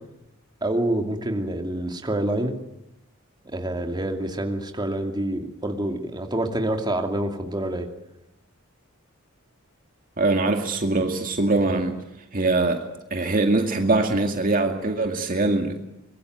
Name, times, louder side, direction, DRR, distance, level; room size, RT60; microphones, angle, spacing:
voice 1, 0.6-2.6 3.5-7.9, right 1 dB, 20° right, 4 dB, 2.6 m, -27 dB
voice 2, 10.2-11.9 12.3-12.8 13.1-15.8, right 2 dB, 40° right, 4 dB, 2.2 m, -22 dB
25.0 x 22.0 x 9.4 m, 0.86 s
head